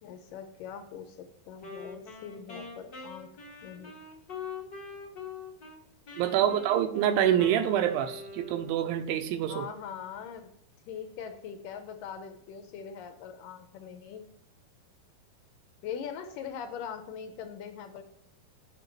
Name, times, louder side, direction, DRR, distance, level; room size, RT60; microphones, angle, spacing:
voice 1, 0.0-3.3 3.6-3.9 6.2-6.7 9.4-10.5 10.9-14.3 15.8-18.0, left 7 dB, 75° left, 7 dB, 2.2 m, -42 dB
Wind instrument woodwind instrument, 1.6-5.8 6.1-9.0, left 4 dB, 40° left, 1.6 m, -44 dB
voice 2, 6.2-9.6, right 10 dB, 80° right, 8 dB, 2.4 m, -26 dB
7.6 x 5.6 x 4.5 m, 0.74 s
omnidirectional pair, 4.2 m